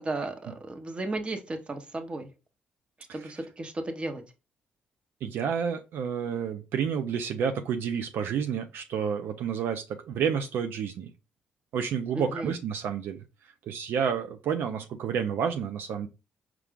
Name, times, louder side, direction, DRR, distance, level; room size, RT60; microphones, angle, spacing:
voice 1, 0.0-2.3 3.1-4.2 12.1-12.5, right 2 dB, 30° right, 6 dB, 0.9 m, -34 dB
voice 2, 5.2-11.1 11.7-13.2 13.7-16.1, right 7 dB, 75° right, 6 dB, 0.4 m, -30 dB
4.6 x 2.4 x 3.5 m, 0.29 s
cardioid pair, 75°, 4 cm